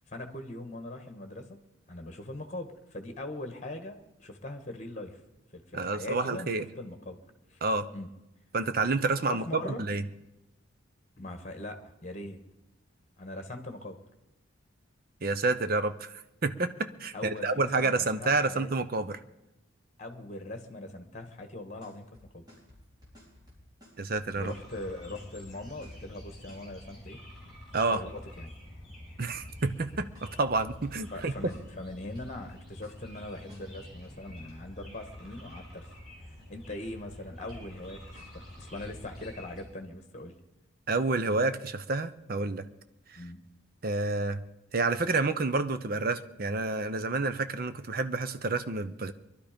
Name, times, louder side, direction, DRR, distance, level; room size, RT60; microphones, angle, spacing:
voice 1, 0.1-1.6 1.9-5.2 5.5-7.2 7.5-7.6 7.9-8.1 9.3-9.8 11.2-12.4 13.2-14.0 17.1-18.9 20.0-22.5 24.3-27.2 27.9-28.5 31.1-35.9 36.5-40.4 43.1-43.4, left 2 dB, 35° left, 6 dB, 1.5 m, -41 dB
voice 2, 5.7-6.6 7.6-7.9 8.5-10.0 15.2-19.2 24.0-24.5 27.7-28.0 29.2-31.3 40.9-42.7 43.1-43.2 43.8-44.4 44.7-49.1, right 3 dB, 45° right, 11 dB, 0.7 m, -29 dB
sound 1, 21.8-26.7 29.5-31.2 31.5-31.8 32.1-32.5 32.8-34.8 37.5-37.9 38.1-39.3, left 1 dB, 20° right, 4.2 m, -55 dB
sound 2, 24.3-39.6, left 1 dB, ahead, 6.0 m, -48 dB
21.5 x 11.5 x 5.2 m, 0.95 s
head